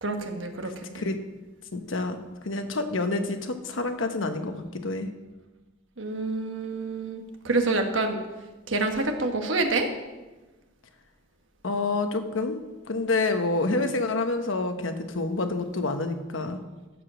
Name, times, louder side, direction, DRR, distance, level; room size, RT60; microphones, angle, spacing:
voice 1, 0.0-1.0 6.0-8.2 8.7-9.9, right 3 dB, 85° right, 4 dB, 1.3 m, -27 dB
voice 2, 1.7-2.2 2.4-5.1 11.6-16.6, left 3 dB, 85° left, 7 dB, 1.0 m, -28 dB
15.0 x 5.1 x 6.2 m, 1.2 s
head